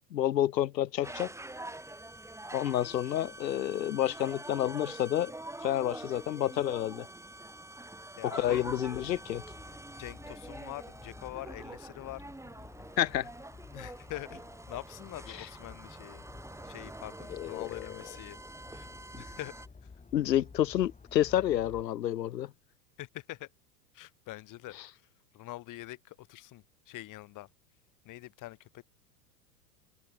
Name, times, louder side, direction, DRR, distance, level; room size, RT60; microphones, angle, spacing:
voice 1, 0.1-1.3 2.5-5.3 5.6-7.1 8.3-9.4 13.0-13.3 15.3-15.5 17.3-17.9 20.1-22.5 24.7-24.9, left 12 dB, 85° left, 1.0 m, -29 dB
sound 1, 1.0-19.7, right 2 dB, 5° right, 7.4 m, -46 dB
voice 2, 8.2-8.6 10.0-12.3 13.7-16.2 16.6-18.4 18.7-18.9 19.1-19.6 23.0-23.5 23.9-24.8 25.3-27.5 28.0-28.8, left 17 dB, 40° left, 1.6 m, -44 dB
sound 2, 8.6-21.8, left 4 dB, 15° left, 5.3 m, -52 dB
open air
hypercardioid pair, 95°, 49 cm